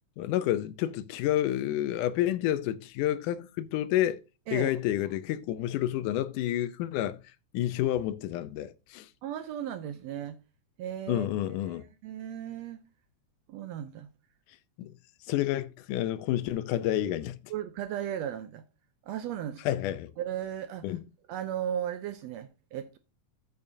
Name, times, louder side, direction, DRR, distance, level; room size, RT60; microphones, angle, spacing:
voice 1, 0.2-4.2 4.5-7.2 7.5-9.1 11.1-11.9 14.8-14.9 15.3-17.4 19.7-20.1 20.8-21.0, left 13 dB, 85° left, 2.3 m, -29 dB
voice 2, 9.2-10.4 10.8-11.3 11.6-12.8 13.5-14.1 17.5-18.6 19.1-19.6 20.2-20.8 21.3-23.0, right 10 dB, 75° right, 1.6 m, -36 dB
13.5 x 6.9 x 2.7 m
omnidirectional pair, 3.6 m